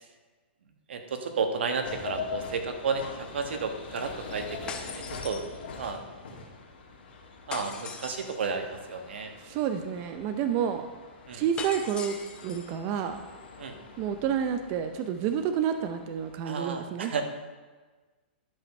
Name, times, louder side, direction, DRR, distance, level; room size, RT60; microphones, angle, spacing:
voice 1, 0.9-5.4 5.8-6.0 7.5-9.3 11.3-11.4 13.6-13.8 16.4-17.2, right 5 dB, 80° right, 6 dB, 1.3 m, -32 dB
sound 1, 1.8-16.3, left 5 dB, 70° left, 2.5 m, -43 dB
sound 2, 4.7-6.0 7.5-8.5 11.6-12.7, left 5 dB, 15° left, 0.8 m, -40 dB
voice 2, 9.4-10.8 11.3-12.2 12.4-13.2 14.0-17.2, right 8 dB, 35° right, 8 dB, 0.5 m, -29 dB
11.5 x 5.2 x 5.4 m, 1.3 s
hypercardioid pair, 145°, 6 cm